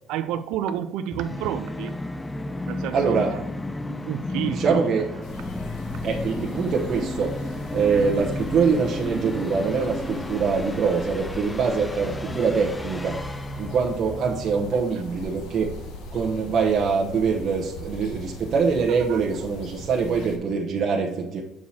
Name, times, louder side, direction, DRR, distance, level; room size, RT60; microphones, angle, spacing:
voice 1, 0.1-2.0 2.7-3.4 3.9-4.9 5.1-5.2 19.1-19.2, right 10 dB, 85° right, 9 dB, 0.3 m, -30 dB
Musical instrument, 1.1-14.8, left 2 dB, 10° left, 0.3 m, -33 dB
voice 2, 2.9-3.3 4.4-5.1 6.0-21.4, right 5 dB, 45° right, -2 dB, 0.9 m, -24 dB
sound 1, 5.2-20.4, left 2 dB, 75° left, 1.3 m, -40 dB
7.1 x 4.6 x 4.2 m, 0.86 s
cardioid pair, 150°, 0 cm